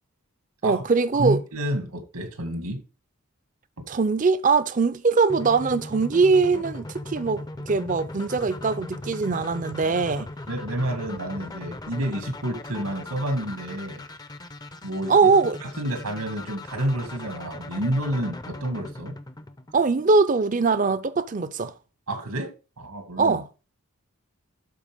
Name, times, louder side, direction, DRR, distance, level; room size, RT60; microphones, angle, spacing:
voice 1, 0.6-1.4 3.9-10.3 15.1-15.6 19.7-21.7 23.2-23.5, right 4 dB, 35° right, 0.5 m, -21 dB
voice 2, 1.2-2.8 10.5-14.0 14.8-15.3 15.6-19.2 22.1-23.4, right 1 dB, 85° right, 2.3 m, -29 dB
sound 1, 5.3-20.2, left 2 dB, 15° left, 0.5 m, -39 dB
12.5 x 4.6 x 3.5 m
head